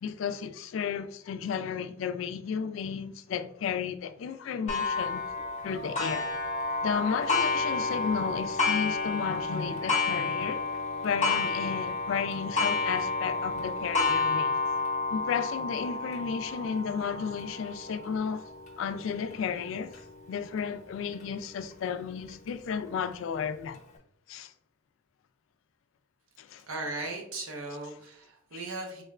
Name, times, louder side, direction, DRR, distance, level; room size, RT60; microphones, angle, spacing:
voice 1, 0.0-5.2 5.6-6.3 6.8-10.6 11.0-14.5 15.1-18.5 18.8-23.8 24.3-24.5 26.4-26.7 28.5-28.6, left 7 dB, 70° left, 0.3 m, -33 dB
Clock, 4.7-20.0 20.6-20.7 21.2-21.3 22.3-22.4, left 3 dB, 35° left, 0.8 m, -30 dB
voice 2, 26.7-29.0, right 2 dB, 85° right, 0.8 m, -37 dB
3.7 x 3.2 x 2.3 m
head